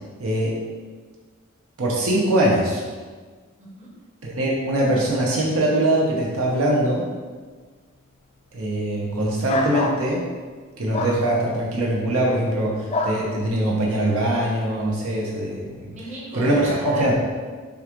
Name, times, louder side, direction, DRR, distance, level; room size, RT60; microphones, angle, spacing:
voice 1, 0.2-0.5 1.8-2.8 4.2-7.0 8.5-10.2 10.8-15.9 16.3-17.1, right 1 dB, 75° right, -3 dB, 0.9 m, -22 dB
voice 2, 3.6-3.9 15.9-17.1, right 1 dB, 35° right, -5 dB, 1.0 m, -36 dB
sound 1, 9.5-10.0 10.9-11.2 12.9-13.2, left 2 dB, 30° left, 0.4 m, -24 dB
6.8 x 2.5 x 3.1 m, 1.5 s
head